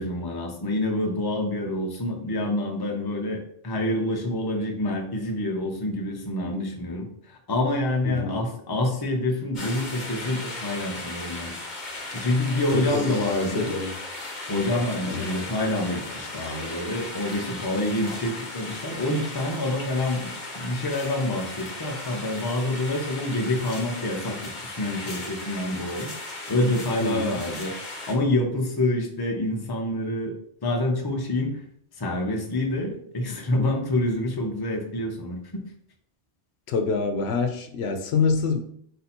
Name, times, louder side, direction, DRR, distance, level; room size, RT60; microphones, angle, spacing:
voice 1, 0.0-11.5 12.0-13.7 14.5-26.1 26.5-27.7 28.1-30.3 30.6-31.6 32.0-35.6, left 1 dB, 25° left, 1 dB, 0.6 m, -27 dB
voice 2, 8.0-8.4 12.7-14.0 15.1-15.4 27.0-27.4 36.7-38.6, left 4 dB, 80° left, 7 dB, 0.8 m, -26 dB
sound 1, 9.5-28.1, left 2 dB, 50° left, 1.0 m, -37 dB
4.0 x 2.8 x 4.2 m, 0.65 s
omnidirectional pair, 1.1 m